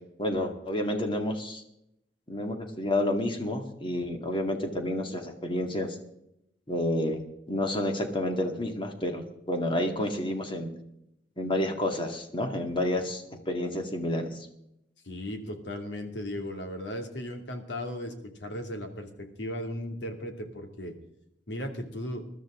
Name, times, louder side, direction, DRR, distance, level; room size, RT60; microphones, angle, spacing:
voice 1, 0.2-1.6 2.3-6.0 6.7-7.2 7.5-10.7 11.4-14.5, left 1 dB, 30° left, 4 dB, 2.1 m, -30 dB
voice 2, 15.0-21.0 21.5-22.2, left 1 dB, 85° left, 4 dB, 2.6 m, -36 dB
21.0 x 13.0 x 3.8 m, 0.79 s
head